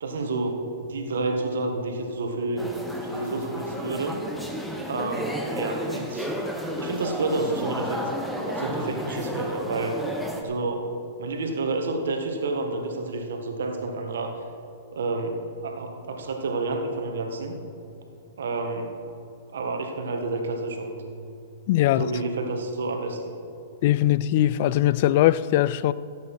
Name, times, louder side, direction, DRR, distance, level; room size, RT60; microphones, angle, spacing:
voice 1, 0.0-2.6 3.0-4.2 4.9-6.3 6.8-8.0 8.5-10.0 10.4-10.9 11.2-14.3 14.9-15.4 15.6-17.5 18.4-18.9 19.5-21.0 21.9-23.3, right 3 dB, 75° right, 1.6 m, -29 dB
sound 1, 2.6-10.4, equal, ahead, 1.2 m, -32 dB
voice 2, 21.7-22.1 23.8-25.9, left 13 dB, 55° left, 0.3 m, -20 dB
15.5 x 8.2 x 4.4 m
hypercardioid pair, 115°, 0 cm